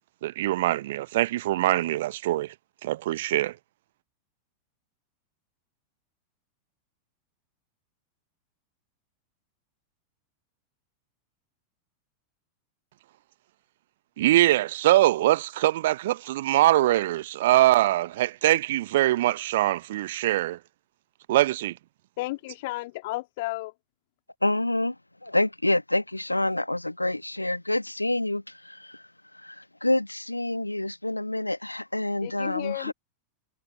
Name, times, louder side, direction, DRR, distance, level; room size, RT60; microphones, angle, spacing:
voice 1, 0.2-2.5 2.8-3.6 14.2-20.6 21.3-21.8, right 15 dB, 55° right, 1.1 m, -23 dB
voice 2, 22.2-23.7 32.2-32.9, left 20 dB, 50° left, 2.9 m, -33 dB
voice 3, 24.4-24.9 25.2-29.0 29.3-32.9, left 1 dB, 85° left, 1.3 m, -27 dB
figure-of-eight pair, 90°, 0 cm